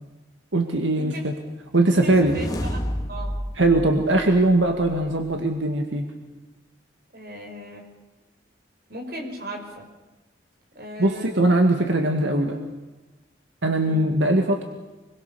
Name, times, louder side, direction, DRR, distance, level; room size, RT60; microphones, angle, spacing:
voice 1, 0.5-1.3 1.7-2.4 3.6-6.1 11.0-12.6 13.6-14.6, right 2 dB, 85° right, 4 dB, 2.1 m, -20 dB
sound 1, 1.9-5.2, equal, 20° left, 2.0 m, -32 dB
voice 2, 2.0-2.8 3.1-3.4 7.1-7.9 8.9-9.9 10.8-11.3 13.8-14.1, equal, 55° right, 2 dB, 5.3 m, -37 dB
25.5 x 22.0 x 7.0 m, 1.1 s
head